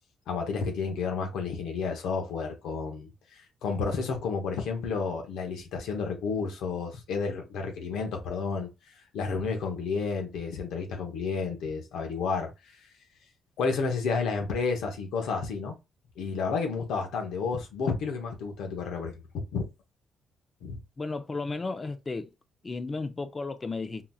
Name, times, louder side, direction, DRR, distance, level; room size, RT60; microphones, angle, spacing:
voice 1, 0.3-8.7 9.1-12.5 13.6-15.8 16.2-19.6 20.6-20.8, left 5 dB, 85° left, 0.9 m, -31 dB
voice 2, 21.0-22.3 22.6-24.1, left 3 dB, 25° left, 0.5 m, -34 dB
3.8 x 2.8 x 2.3 m
cardioid pair, 90°, 0 cm